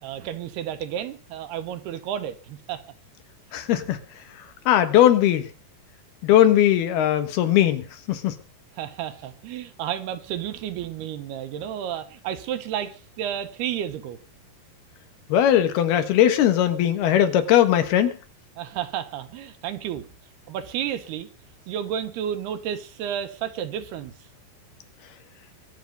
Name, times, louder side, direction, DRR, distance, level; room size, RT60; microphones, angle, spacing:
voice 1, 0.0-2.8 3.8-3.9 8.8-14.2 18.6-20.1 20.5-21.3 21.7-24.1, right 10 dB, 75° right, 3.2 m, -31 dB
voice 2, 3.5-4.0 4.7-5.5 6.2-8.3 15.3-18.1, left 11 dB, 75° left, 3.3 m, -19 dB
22.5 x 9.1 x 5.3 m
omnidirectional pair, 4.8 m